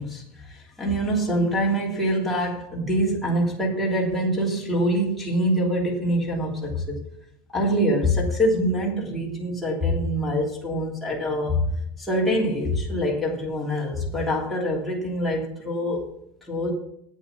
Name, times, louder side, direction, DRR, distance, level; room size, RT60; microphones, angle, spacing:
voice 1, 0.0-7.0 7.5-11.7 12.0-16.1 16.5-16.7, equal, ahead, -5 dB, 3.1 m, -25 dB
8.7 x 8.4 x 7.1 m, 0.72 s
cardioid pair, 155°, 7 cm